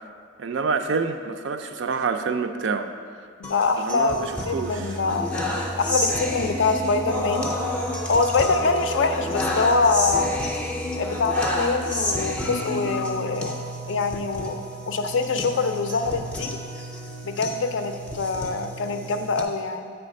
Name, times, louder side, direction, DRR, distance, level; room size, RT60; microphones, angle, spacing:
voice 1, 0.4-2.9 3.8-5.0, right 5 dB, 60° right, 7 dB, 0.4 m, -27 dB
voice 2, 3.4-5.4 5.8-7.5 8.1-10.3 11.0-14.6 14.9-16.6 17.2-19.9, left 4 dB, 60° left, 7 dB, 0.4 m, -24 dB
sound 1, 3.4-19.4, left 1 dB, 5° left, 0.4 m, -30 dB
8.0 x 3.3 x 5.2 m, 2.2 s
head